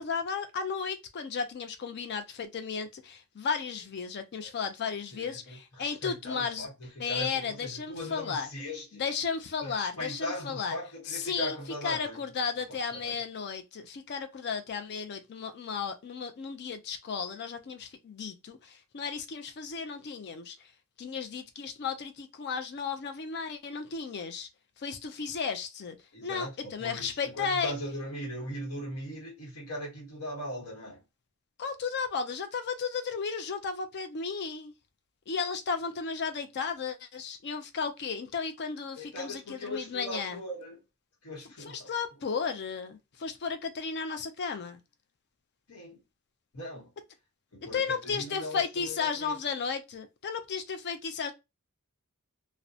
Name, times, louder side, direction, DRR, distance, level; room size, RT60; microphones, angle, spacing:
voice 1, 0.0-6.7 7.0-8.5 8.9-10.8 11.1-11.5 11.8-20.6 21.0-24.5 24.8-26.0 26.2-27.7 31.6-34.7 35.3-40.4 41.6-44.8 47.7-51.3, left 5 dB, 50° left, 0.4 m, -34 dB
voice 2, 5.1-9.0 9.6-12.2 12.7-13.2 26.1-31.0 39.0-40.8 41.2-41.9 45.7-46.0 46.5-46.9 47.5-49.4, equal, 80° left, 1.0 m, -39 dB
2.7 x 2.1 x 2.3 m
head